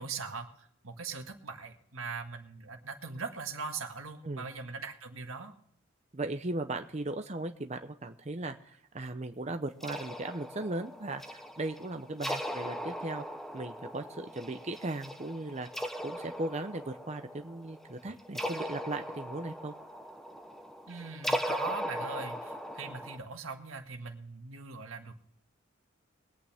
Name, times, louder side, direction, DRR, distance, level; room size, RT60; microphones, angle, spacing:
voice 1, 0.0-5.5 20.9-25.2, right 4 dB, 85° right, 5 dB, 1.7 m, -41 dB
voice 2, 6.1-13.2 13.5-15.7 16.0-19.7, right 2 dB, 35° right, 7 dB, 0.7 m, -37 dB
sound 1, 9.8-23.2, equal, ahead, 1.1 m, -39 dB
22.0 x 8.8 x 3.5 m, 0.67 s
head